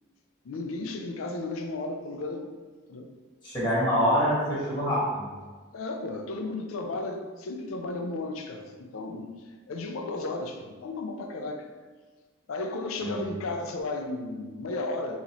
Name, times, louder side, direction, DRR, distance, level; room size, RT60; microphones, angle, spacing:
voice 1, 0.4-2.5 2.9-3.1 5.7-9.3 9.7-11.7 12.5-15.2, left 2 dB, 85° left, 4 dB, 0.4 m, -34 dB
voice 2, 3.4-5.3 13.0-13.2, equal, 20° left, -8 dB, 1.2 m, -25 dB
3.9 x 3.0 x 2.9 m, 1.4 s
head